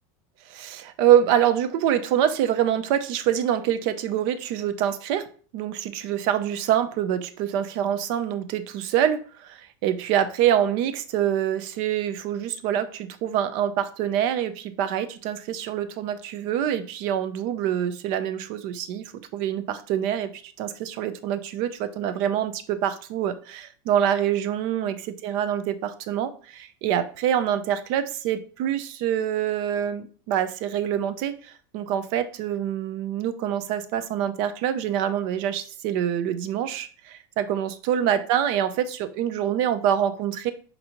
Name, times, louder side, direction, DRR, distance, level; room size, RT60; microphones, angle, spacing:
voice 1, 0.5-5.2 5.5-20.3 20.6-40.5, right 10 dB, 40° right, 11 dB, 0.4 m, -25 dB
5.6 x 2.6 x 2.8 m, 0.42 s
supercardioid pair, 175°, 12 cm